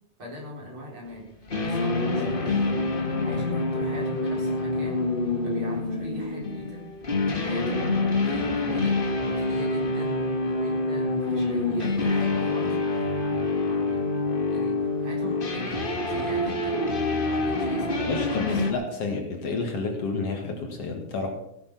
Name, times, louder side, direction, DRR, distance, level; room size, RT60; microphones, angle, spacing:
voice 1, 0.2-2.7 3.2-5.1 5.4-6.8 7.4-14.2 14.5-16.8 17.1-18.6, right 1 dB, 40° right, -2 dB, 4.8 m, -40 dB
sound 1, 1.5-18.7, left 2 dB, 30° left, 0.9 m, -26 dB
voice 2, 18.1-21.3, left 3 dB, 55° left, 3 dB, 2.7 m, -30 dB
16.5 x 9.8 x 6.0 m, 0.77 s
omnidirectional pair, 3.5 m